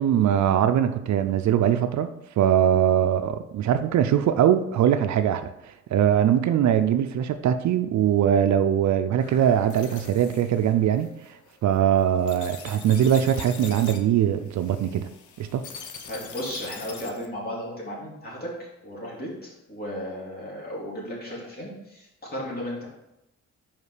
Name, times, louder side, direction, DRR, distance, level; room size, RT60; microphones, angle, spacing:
voice 1, 0.0-2.1 2.4-11.1 11.6-15.1 15.4-15.6, right 9 dB, 65° right, 9 dB, 0.5 m, -21 dB
sound 1, 9.2-17.3, left 6 dB, 75° left, 0.9 m, -43 dB
voice 2, 16.1-18.5 18.8-22.9, equal, 30° left, -4 dB, 2.7 m, -35 dB
5.4 x 5.1 x 4.9 m, 0.90 s
cardioid pair, 115°, 30 cm